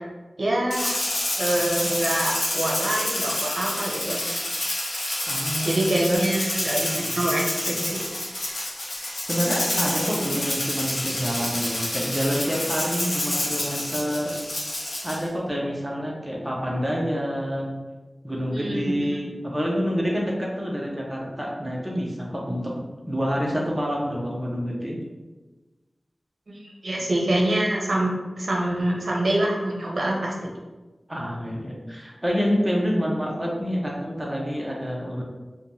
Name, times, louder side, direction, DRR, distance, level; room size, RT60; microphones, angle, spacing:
voice 1, 0.4-1.0 1.4-4.2 5.6-8.0 18.5-19.0 22.5-22.6 26.5-30.3, right 1 dB, 70° right, -2 dB, 0.6 m, -25 dB
Rattle (instrument), 0.7-15.2, left 1 dB, 85° left, 0.7 m, -28 dB
voice 2, 5.2-6.2 6.9-7.2 9.3-14.3 15.0-17.7 18.2-25.0 31.1-35.2, equal, 15° right, -3 dB, 0.5 m, -27 dB
3.0 x 2.2 x 2.6 m, 1.2 s
wide cardioid pair, 65°, 0 cm